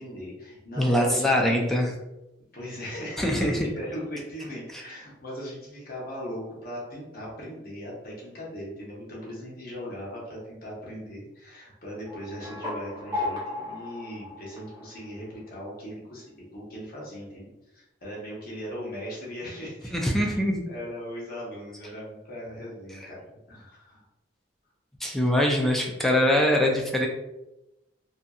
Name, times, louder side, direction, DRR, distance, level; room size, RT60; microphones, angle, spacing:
voice 1, 0.0-1.6 2.5-24.0, equal, 55° left, -5 dB, 0.9 m, -39 dB
voice 2, 0.8-1.9 3.2-3.7 19.9-20.6 25.0-27.1, left 1 dB, ahead, 0 dB, 0.3 m, -23 dB
sound 1, 12.1-15.4, left 2 dB, 25° right, 0.8 m, -35 dB
2.7 x 2.6 x 2.3 m, 0.93 s
head